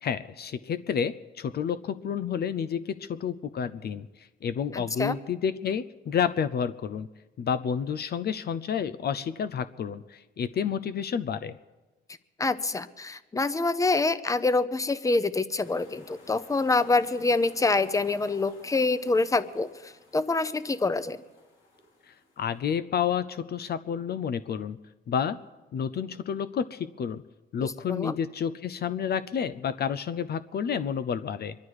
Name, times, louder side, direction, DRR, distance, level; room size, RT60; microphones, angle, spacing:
voice 1, 0.0-7.1 7.4-11.6 22.1-24.8 25.1-25.4 25.7-27.2 27.5-31.6, left 7 dB, 55° left, 13 dB, 0.6 m, -30 dB
voice 2, 4.7-5.2 12.4-21.2 27.6-28.2, left 3 dB, 15° left, 14 dB, 0.8 m, -26 dB
sound 1, 15.6-22.6, left 2 dB, 85° left, 3.6 m, -55 dB
25.0 x 11.5 x 4.8 m, 1.2 s
cardioid pair, 90°, 20 cm